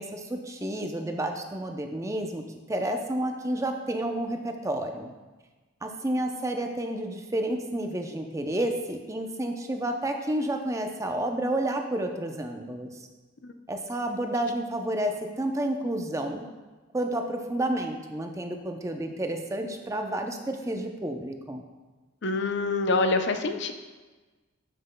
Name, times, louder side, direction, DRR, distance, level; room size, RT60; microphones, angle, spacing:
voice 1, 0.0-5.1 5.8-12.9 13.7-16.4 16.9-21.6, right 1 dB, 15° right, 4 dB, 0.5 m, -30 dB
voice 2, 22.2-23.7, left 3 dB, 60° left, 7 dB, 0.6 m, -26 dB
12.5 x 5.9 x 2.2 m, 1.3 s
head